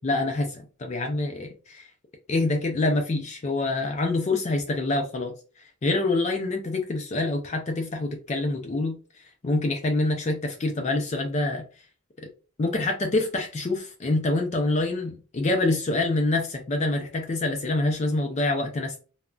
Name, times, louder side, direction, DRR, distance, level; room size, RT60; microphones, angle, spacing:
voice 1, 0.0-1.9 2.3-5.3 5.8-11.7 12.6-19.0, left 2 dB, 30° left, 3 dB, 0.4 m, -26 dB
3.6 x 2.1 x 2.2 m, 0.37 s
head